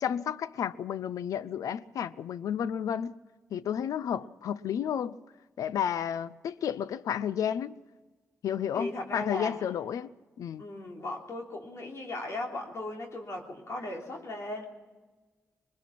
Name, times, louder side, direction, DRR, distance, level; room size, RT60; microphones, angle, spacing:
voice 1, 0.0-3.1 3.5-5.2 5.6-7.7 8.4-10.1 10.4-10.6, left 9 dB, 90° left, 0.6 m, -32 dB
voice 2, 8.7-9.6 9.9-10.0 10.6-14.7, left 2 dB, 60° left, 3.4 m, -37 dB
22.0 x 21.0 x 6.0 m
cardioid pair, 70°, 6 cm